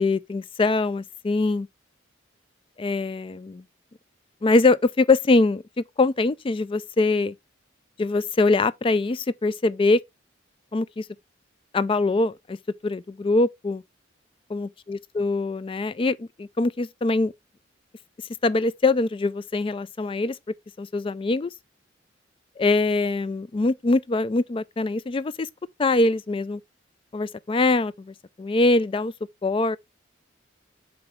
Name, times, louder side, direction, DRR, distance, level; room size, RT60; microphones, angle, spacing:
voice 1, 0.0-1.7 2.8-3.6 4.4-7.3 8.0-10.0 10.7-11.0 11.7-12.6 12.8-13.8 14.5-17.3 18.4-20.4 20.8-21.5 22.6-25.5 25.8-26.6 27.1-29.1 29.4-29.8, left 3 dB, 25° left, 0.3 m, -23 dB
7.6 x 4.8 x 3.2 m
head